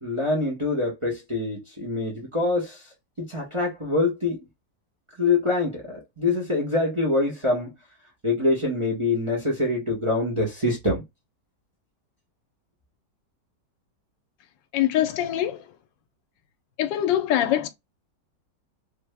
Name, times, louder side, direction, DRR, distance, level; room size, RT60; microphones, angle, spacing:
voice 1, 0.0-4.5 5.2-7.7 8.2-11.0, left 2 dB, 25° right, 0.7 m, -25 dB
voice 2, 14.7-15.6 16.8-17.7, left 11 dB, 80° left, 1.2 m, -23 dB
3.3 x 2.0 x 3.3 m
omnidirectional pair, 1.9 m